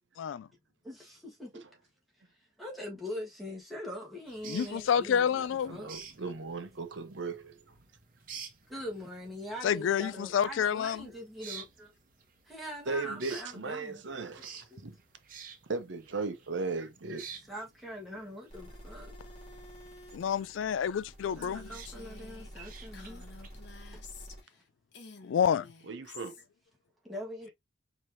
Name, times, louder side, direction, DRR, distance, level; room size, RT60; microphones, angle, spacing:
voice 1, 0.8-1.6 2.6-6.0 8.7-11.9 12.5-14.0 14.7-14.8 17.5-19.1 21.3-23.3 27.0-27.5, left 1 dB, ahead, 1.5 m, -42 dB
sound 1, 4.3-23.7, right 6 dB, 45° right, 0.9 m, -52 dB
voice 2, 4.5-5.7 9.6-11.0 20.1-21.7 25.2-25.7, left 8 dB, 85° left, 0.3 m, -28 dB
voice 3, 5.6-7.6 12.9-14.5 14.8-15.0 15.7-17.3 25.8-26.4, right 3 dB, 75° right, 0.8 m, -37 dB
sound 2, 18.5-24.4, equal, 35° left, 2.3 m, -49 dB
Female speech woman speaking, 21.4-24.6 24.9-26.4, left 4 dB, 70° left, 1.1 m, -51 dB
4.7 x 3.0 x 2.7 m
head